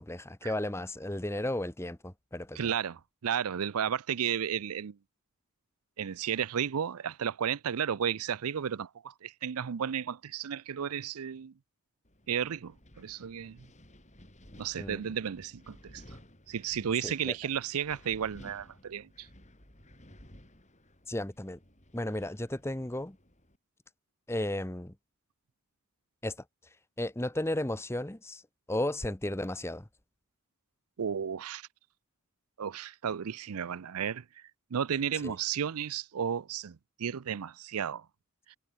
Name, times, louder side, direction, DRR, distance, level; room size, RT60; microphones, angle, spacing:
voice 1, 0.0-2.7 14.8-15.0 17.0-17.3 21.1-21.6 21.9-23.2 24.3-24.9 26.2-26.4 27.0-28.4 28.7-29.9 35.2-35.3, left 1 dB, 10° left, 0.9 m, -34 dB
voice 2, 2.6-4.9 6.0-11.5 12.3-13.6 14.6-16.0 16.5-19.3 31.0-31.7 32.6-34.2 34.7-38.0 38.5-38.6, right 8 dB, 85° right, 0.5 m, -33 dB
Wind, 12.0-23.6, left 1 dB, 30° left, 6.2 m, -56 dB
head